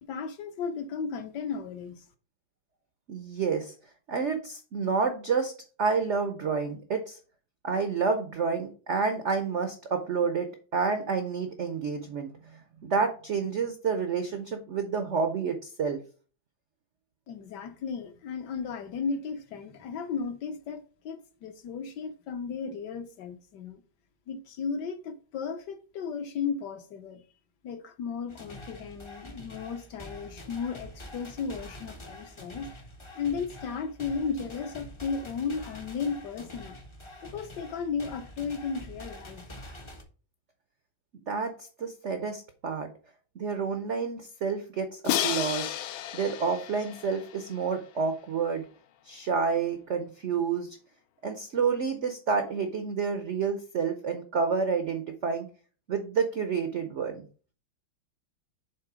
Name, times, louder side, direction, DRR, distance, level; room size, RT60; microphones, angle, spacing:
voice 1, 0.0-2.1 17.3-23.8 24.3-27.2 27.6-32.7 33.2-36.8 37.2-39.5, left 5 dB, 70° left, 1.1 m, -35 dB
voice 2, 3.1-3.7 4.1-5.5 5.8-7.2 7.6-12.3 12.8-16.0 41.3-42.9 43.4-45.7 46.1-48.6 49.0-50.8 51.2-55.5 55.9-57.2, right 5 dB, 80° right, 0.6 m, -29 dB
sound 1, 28.3-40.0, left 1 dB, 50° left, 0.3 m, -46 dB
Crash cymbal, 45.1-48.0, left 12 dB, 85° left, 1.4 m, -32 dB
7.5 x 3.3 x 4.9 m
omnidirectional pair, 2.2 m